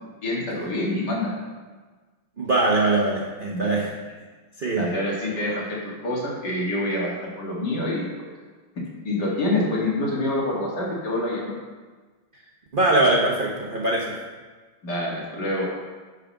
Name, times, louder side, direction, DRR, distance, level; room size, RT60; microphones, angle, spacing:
voice 1, 0.2-1.3 3.5-3.7 4.7-8.3 9.0-11.5 14.8-15.6, left 1 dB, 55° left, -4 dB, 2.6 m, -26 dB
voice 2, 2.4-3.9 4.6-4.9 12.7-14.1, right 2 dB, 50° right, -2 dB, 0.6 m, -22 dB
8.6 x 4.9 x 5.8 m, 1.4 s
omnidirectional pair, 2.2 m